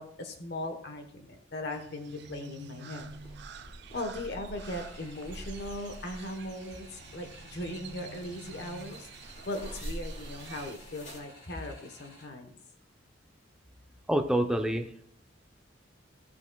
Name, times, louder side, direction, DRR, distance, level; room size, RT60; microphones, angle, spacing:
voice 1, 0.0-3.1 3.9-9.1 9.4-12.6, left 1 dB, 60° left, 5 dB, 1.1 m, -39 dB
Crow, 1.7-10.8, right 5 dB, 60° right, 0.5 m, -49 dB
sound 1, 3.0-11.2, right 1 dB, 40° left, 3.1 m, -46 dB
sound 2, 4.6-12.3, left 1 dB, 85° left, 3.7 m, -55 dB
voice 2, 14.1-15.0, right 1 dB, 5° right, 5 dB, 0.6 m, -27 dB
17.5 x 5.8 x 2.3 m, 0.67 s
head